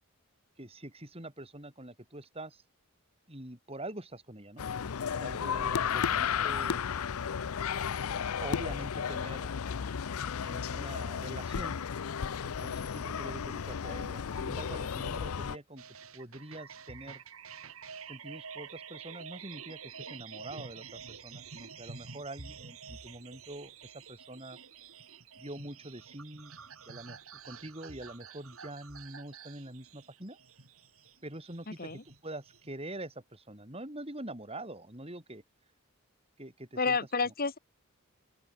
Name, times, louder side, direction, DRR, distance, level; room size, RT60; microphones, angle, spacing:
voice 1, 0.6-2.6 3.3-4.6 5.1-6.8 8.1-9.5 10.4-11.8 12.4-15.8 16.1-17.2 18.1-24.6 25.4-26.5 26.9-30.4 31.2-35.4 36.4-37.0 37.3-37.4, right 1 dB, 25° right, 5.2 m, -45 dB
sound 1, 4.6-15.6, left 7 dB, 80° left, 0.5 m, -33 dB
sound 2, 15.8-32.7, right 6 dB, 70° right, 3.0 m, -49 dB
voice 2, 36.8-37.6, left 4 dB, 40° left, 1.5 m, -30 dB
open air
head